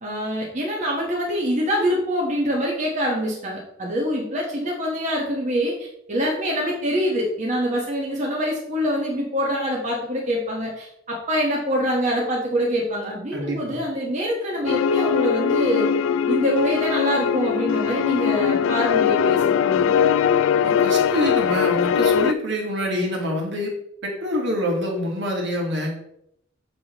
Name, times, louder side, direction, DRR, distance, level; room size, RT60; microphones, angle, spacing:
voice 1, 0.0-15.9 16.3-19.9, equal, 35° right, -3 dB, 1.4 m, -25 dB
voice 2, 13.3-13.8 20.6-23.7 24.0-26.0, equal, 60° right, 0 dB, 1.8 m, -26 dB
sound 1, 14.7-22.3, left 7 dB, 75° left, 0.3 m, -21 dB
6.9 x 6.0 x 3.1 m, 0.74 s
head